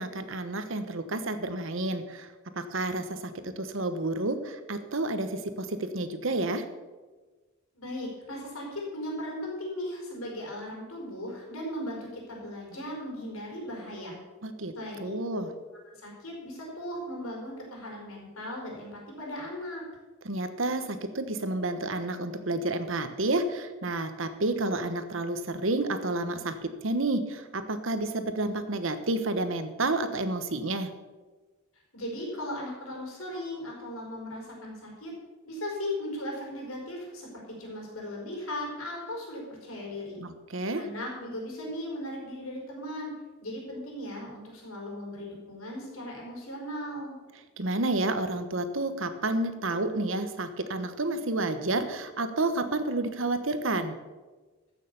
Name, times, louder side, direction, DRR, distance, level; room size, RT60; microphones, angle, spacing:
voice 1, 0.0-2.3 2.5-3.3 3.6-6.6 14.4-14.7 15.0-15.5 20.2-30.9 40.2-40.8 47.6-54.0, right 2 dB, 70° right, 10 dB, 1.1 m, -30 dB
voice 2, 7.7-14.2 14.7-15.4 15.9-19.8 31.9-35.1 35.4-40.2 40.8-43.1 43.4-47.1, left 1 dB, 85° left, -1 dB, 4.7 m, -37 dB
14.5 x 6.6 x 6.9 m, 1.3 s
head